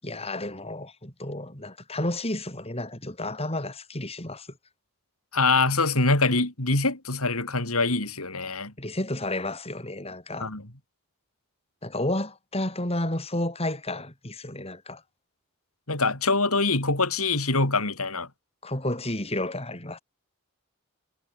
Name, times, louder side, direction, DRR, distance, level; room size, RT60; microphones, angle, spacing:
voice 1, 0.0-4.5 8.8-10.5 11.8-15.0 18.6-20.0, left 1 dB, 25° left, 7.1 m, -31 dB
voice 2, 5.3-8.7 10.4-10.6 15.9-18.3, left 3 dB, 80° left, 6.2 m, -24 dB
head